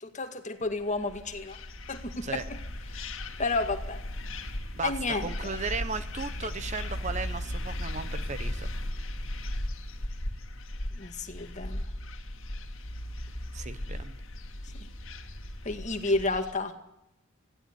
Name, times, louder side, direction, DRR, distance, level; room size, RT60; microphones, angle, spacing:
voice 1, 0.0-1.6 1.9-2.6 2.9-3.1 3.4-4.0 4.8-5.3 11.0-11.8 14.7-14.9 15.6-16.7, left 3 dB, 35° left, 7 dB, 2.1 m, -31 dB
sound 1, 0.8-16.5, left 1 dB, 60° left, 2.2 m, -37 dB
voice 2, 4.7-8.7 13.5-14.2, right 4 dB, 35° right, 12 dB, 1.0 m, -36 dB
21.0 x 16.0 x 9.6 m, 0.84 s
head